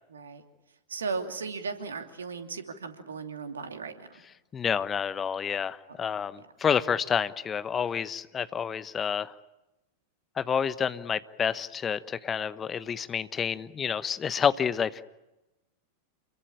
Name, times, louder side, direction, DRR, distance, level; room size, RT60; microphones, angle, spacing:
voice 1, 0.1-0.4 0.9-4.2 5.9-6.0 6.4-6.5, right 4 dB, 70° right, 6 dB, 2.8 m, -36 dB
voice 2, 4.5-9.3 10.4-15.0, left 7 dB, 20° left, 15 dB, 1.1 m, -29 dB
28.5 x 22.5 x 8.9 m, 0.99 s
figure-of-eight pair, 90°, 0 cm